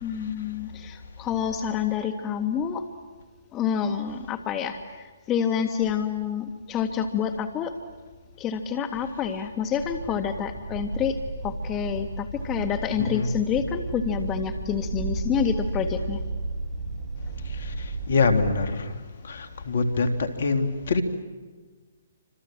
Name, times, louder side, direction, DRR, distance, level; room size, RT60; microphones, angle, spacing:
voice 1, 0.0-2.9 3.5-7.7 8.4-11.2 11.4-16.2, left 7 dB, 20° left, 7 dB, 1.5 m, -28 dB
sound 1, 9.8-18.5, right 2 dB, 50° right, 7.8 m, -33 dB
voice 2, 18.1-18.8 19.3-21.0, left 4 dB, 65° left, 7 dB, 2.7 m, -24 dB
29.0 x 26.0 x 7.6 m, 1.4 s
hypercardioid pair, 140°, 0 cm